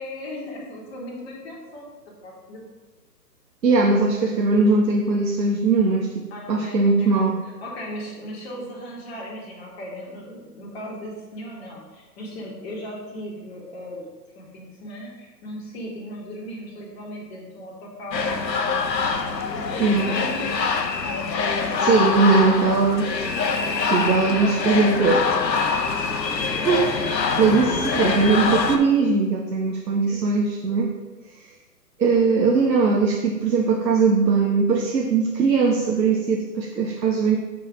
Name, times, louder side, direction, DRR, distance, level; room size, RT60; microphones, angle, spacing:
voice 1, 0.0-1.9 2.2-2.7 6.3-14.0 14.4-18.4 19.1-20.8 21.4-23.0 24.2-26.0 30.0-30.4, equal, 40° left, -4 dB, 2.2 m, -37 dB
voice 2, 3.6-7.4 19.8-20.1 21.8-23.1 23.9-25.2 26.5-27.0 27.4-30.9 32.0-37.4, right 4 dB, 80° right, 1 dB, 1.0 m, -20 dB
sound 1, 18.1-28.8, left 5 dB, 85° left, 0.9 m, -24 dB
7.2 x 4.0 x 4.9 m, 1.2 s
hypercardioid pair, 140°, 50 cm